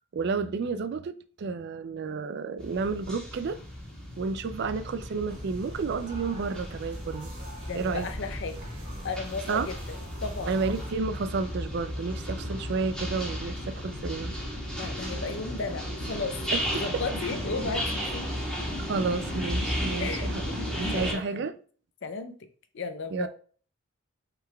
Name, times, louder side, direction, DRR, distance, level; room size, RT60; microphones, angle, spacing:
voice 1, 0.1-3.6 4.1-7.3 7.7-8.1 9.5-9.7 10.5-14.4 16.5-17.0 18.8-20.4 20.7-21.5 23.1-23.3, right 4 dB, 55° right, 0.3 m, -31 dB
sound 1, 2.6-21.1, equal, 5° left, 1.5 m, -34 dB
sound 2, 5.3-10.9, right 1 dB, 80° right, 2.3 m, -45 dB
voice 2, 7.7-8.6 9.0-10.5 14.8-16.4 16.7-18.3 20.0-20.3 20.8-21.5 22.0-22.3 22.7-23.3, left 4 dB, 60° left, 0.6 m, -34 dB
5.6 x 3.9 x 2.3 m
head